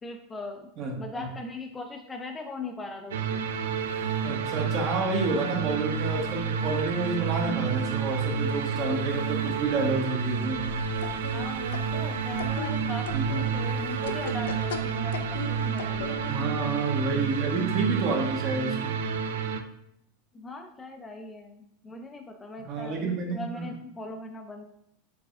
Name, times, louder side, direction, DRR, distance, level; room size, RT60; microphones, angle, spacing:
voice 1, 0.0-3.4 11.3-13.1 13.4-16.3 20.3-24.6, left 2 dB, 15° left, 4 dB, 0.3 m, -39 dB
voice 2, 0.8-1.2 4.2-10.7 13.1-13.4 16.3-18.9 22.6-23.7, right 3 dB, 45° right, 1 dB, 1.0 m, -29 dB
sound 1, 3.1-19.6, right 6 dB, 85° right, 0.3 m, -30 dB
sound 2, 10.5-16.5, left 4 dB, 90° left, 0.3 m, -39 dB
4.6 x 3.2 x 2.4 m, 0.77 s
supercardioid pair, 130°, 0 cm